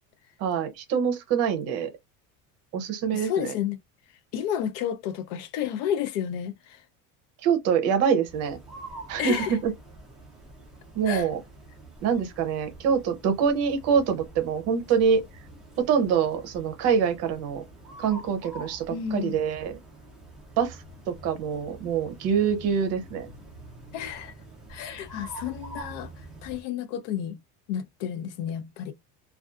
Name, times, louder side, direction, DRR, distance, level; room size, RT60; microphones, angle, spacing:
voice 1, 0.4-1.9 2.7-3.5 7.4-8.6 9.1-9.7 11.0-11.4 12.0-15.2 15.8-17.6 18.0-19.7 20.6-20.8 21.1-23.3, right 7 dB, 45° right, 0.6 m, -25 dB
voice 2, 3.1-3.8 4.3-6.8 9.2-9.6 11.1-11.3 18.9-19.4 23.9-24.3 24.7-26.1 26.4-27.4 27.7-28.9, left 10 dB, 75° left, 0.6 m, -31 dB
sound 1, 8.2-26.6, right 2 dB, ahead, 0.3 m, -46 dB
2.5 x 2.3 x 2.3 m
cardioid pair, 170°, 37 cm